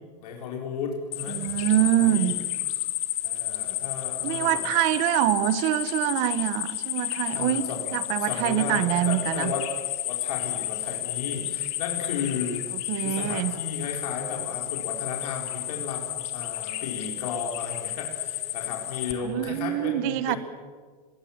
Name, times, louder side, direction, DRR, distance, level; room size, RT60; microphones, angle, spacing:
voice 1, 0.2-1.4 2.0-2.4 3.2-4.6 7.3-7.9 8.2-9.7 10.0-12.7 13.0-20.4, left 6 dB, 70° left, 0 dB, 4.3 m, -34 dB
sound 1, 1.1-19.1, left 14 dB, 30° left, 1.9 m, -32 dB
voice 2, 1.3-2.3 4.2-7.6 7.9-9.5 12.9-13.6 19.2-20.4, right 14 dB, 35° right, 14 dB, 1.1 m, -25 dB
25.5 x 20.5 x 7.3 m, 1.5 s
supercardioid pair, 180°, 20 cm